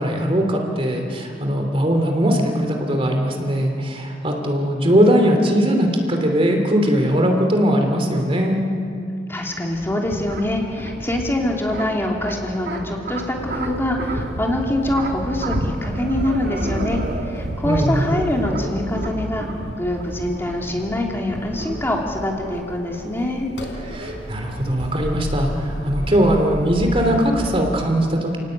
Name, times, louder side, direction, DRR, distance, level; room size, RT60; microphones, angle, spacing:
voice 1, 0.0-8.6 17.6-18.1 23.8-28.4, equal, 35° right, 3 dB, 3.1 m, -20 dB
voice 2, 9.3-19.5 19.8-23.5, left 1 dB, 15° left, 0 dB, 2.9 m, -24 dB
sound 1, 9.4-27.5, right 1 dB, 60° right, 2.1 m, -32 dB
sound 2, 13.4-27.5, equal, 90° left, 4.5 m, -34 dB
29.0 x 18.5 x 8.9 m, 2.8 s
head